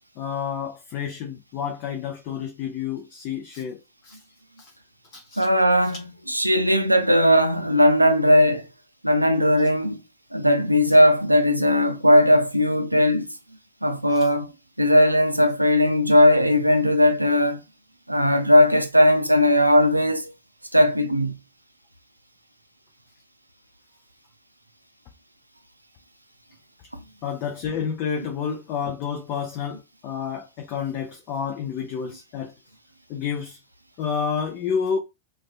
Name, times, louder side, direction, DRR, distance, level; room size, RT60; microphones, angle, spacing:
voice 1, 0.2-3.8 4.0-4.2 4.6-4.7 5.1-5.5 14.1-14.3 27.2-32.5 33.1-33.6 34.0-35.0, left 7 dB, 45° left, 0.4 m, -29 dB
voice 2, 5.4-8.7 9.0-10.0 10.3-13.3 13.8-14.5 14.8-17.6 18.1-20.3 20.7-21.4, equal, 85° right, 0.3 m, -18 dB
2.5 x 2.2 x 2.3 m
figure-of-eight pair, 90°, 0 cm